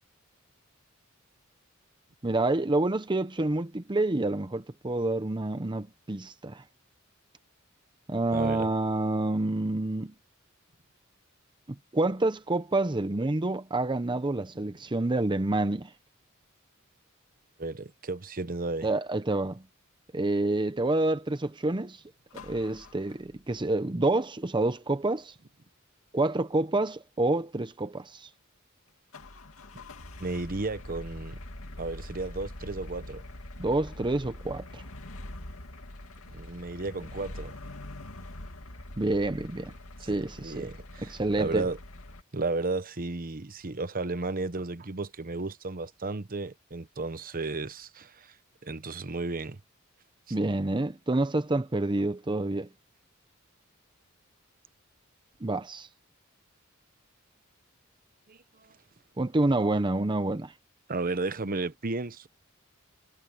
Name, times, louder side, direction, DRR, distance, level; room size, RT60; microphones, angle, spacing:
voice 1, 2.2-6.6 8.1-10.1 11.9-15.9 18.8-19.6 20.1-22.0 22.4-25.3 26.1-28.3 33.6-34.8 39.0-39.7 40.0-40.7 41.0-41.6 50.3-52.7 55.4-55.9 59.2-60.5, right 2 dB, 20° right, 0.7 m, -28 dB
voice 2, 8.3-8.7 17.6-18.9 30.2-31.4 31.8-33.2 36.3-37.5 40.0-41.8 42.3-48.3 48.6-49.6 50.3-50.4 58.3-58.8 60.9-62.3, right 3 dB, 45° right, 1.0 m, -34 dB
sound 1, 22.3-23.6 29.1-42.2, left 1 dB, 75° left, 2.6 m, -44 dB
head